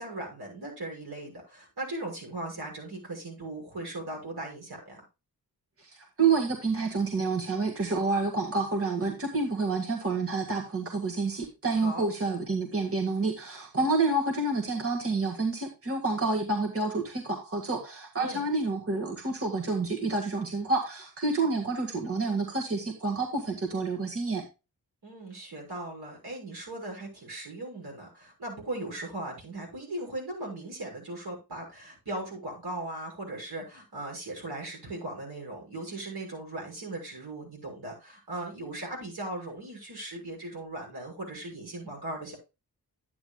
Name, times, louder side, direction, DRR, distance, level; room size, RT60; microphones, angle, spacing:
voice 1, 0.0-5.0 11.8-12.1 18.2-18.5 25.0-42.4, right 2 dB, 80° right, -1 dB, 6.0 m, -38 dB
voice 2, 5.8-24.5, right 3 dB, 35° right, 1 dB, 1.8 m, -28 dB
11.0 x 9.5 x 2.3 m, 0.26 s
wide cardioid pair, 100°, 38 cm